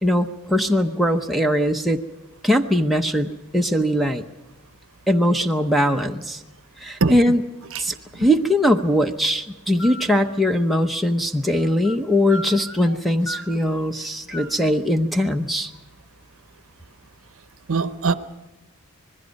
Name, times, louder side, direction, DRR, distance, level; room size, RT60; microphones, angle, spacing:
voice 1, 0.0-2.0 2.4-4.2 5.1-6.4 6.8-7.4 7.8-15.7, equal, ahead, 0.8 m, -21 dB
voice 2, 7.0-7.4 7.7-7.9 8.2-8.3 17.7-18.1, right 4 dB, 60° right, 0.8 m, -22 dB
sound 1, 9.8-10.2 11.5-12.0 12.3-13.0 13.3-14.7, equal, 65° left, 1.3 m, -36 dB
26.0 x 20.5 x 5.3 m
head